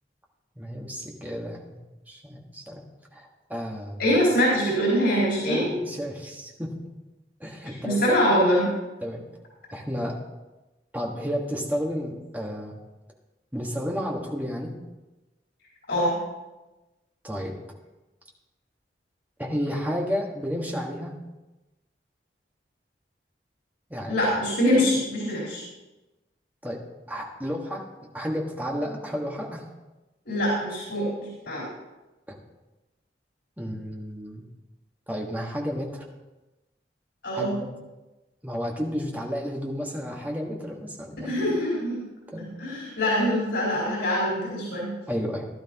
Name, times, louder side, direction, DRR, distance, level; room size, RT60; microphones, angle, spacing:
voice 1, 0.5-1.8 2.1-2.8 3.1-4.0 5.4-6.7 7.4-8.3 9.0-9.2 9.7-10.2 10.9-12.7 13.5-14.7 17.2-17.5 19.4-21.1 23.9-24.2 26.6-26.8 27.1-27.9 28.1-29.7 32.3-32.4 33.6-34.4 35.1-36.0 37.3-37.7 38.4-41.4 42.3-42.5 45.1-45.4, equal, 10° right, -1 dB, 1.6 m, -32 dB
voice 2, 4.0-5.6 7.8-8.7 15.9-16.1 24.1-25.6 30.3-31.7 37.2-37.6 41.2-42.0 42.6-44.9, equal, 90° left, -6 dB, 4.1 m, -24 dB
16.0 x 12.0 x 3.0 m, 1.1 s
head